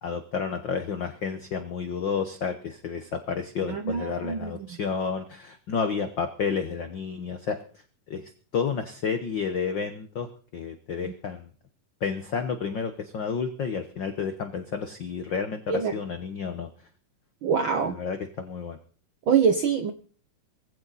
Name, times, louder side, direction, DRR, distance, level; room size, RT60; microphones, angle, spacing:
voice 1, 0.0-7.6 8.1-11.5 12.0-16.7 17.8-18.8, left 6 dB, 60° left, 8 dB, 1.2 m, -31 dB
voice 2, 3.7-4.7 11.0-11.1 15.7-15.9 17.4-18.0 19.3-19.9, right 6 dB, 80° right, 8 dB, 1.1 m, -24 dB
20.5 x 15.5 x 4.2 m, 0.43 s
omnidirectional pair, 3.7 m